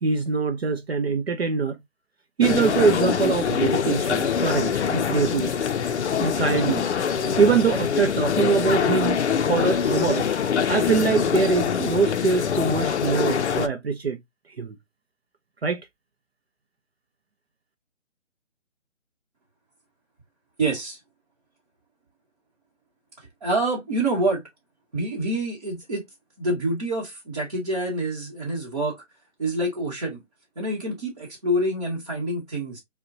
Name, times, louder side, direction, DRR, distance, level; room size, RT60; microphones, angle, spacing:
voice 1, 0.0-1.8 2.4-5.6 6.2-7.0 7.4-9.2 9.5-10.3 10.7-14.2 14.6-14.8 15.6-15.8, right 5 dB, 55° right, 0.5 m, -23 dB
sound 1, 2.4-13.7, left 7 dB, 65° left, 0.5 m, -24 dB
voice 2, 20.6-21.0 23.2-24.4 24.9-26.1 26.4-29.0 29.4-30.2 30.6-32.8, right 1 dB, 30° right, 0.9 m, -27 dB
5.1 x 2.2 x 2.6 m
hypercardioid pair, 170°, 38 cm